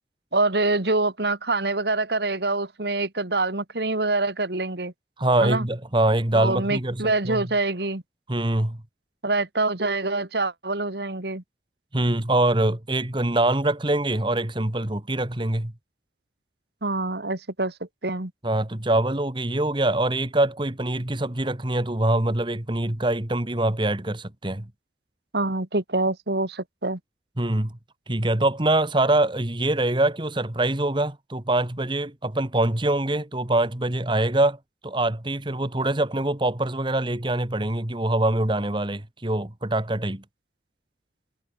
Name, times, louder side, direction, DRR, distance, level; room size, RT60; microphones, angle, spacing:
voice 1, 0.3-4.9 5.4-5.7 6.3-8.0 9.2-11.4 16.8-17.7 18.0-18.3 25.3-27.0, right 2 dB, 65° right, 2.2 m, -25 dB
voice 2, 5.2-7.4 8.3-8.8 11.9-15.7 18.4-24.7 27.4-27.7 28.1-40.2, right 1 dB, 25° right, 1.6 m, -24 dB
head